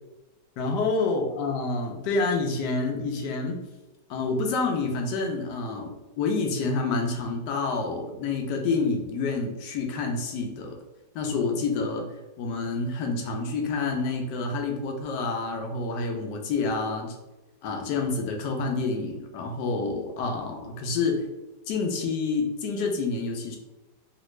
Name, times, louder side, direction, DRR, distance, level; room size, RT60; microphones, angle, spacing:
voice 1, 0.6-3.6 4.1-10.8 11.1-12.0 12.4-17.2 17.6-21.2 21.7-23.6, left 3 dB, 80° left, 2 dB, 1.2 m, -28 dB
3.2 x 2.4 x 3.0 m, 1.0 s
omnidirectional pair, 1.8 m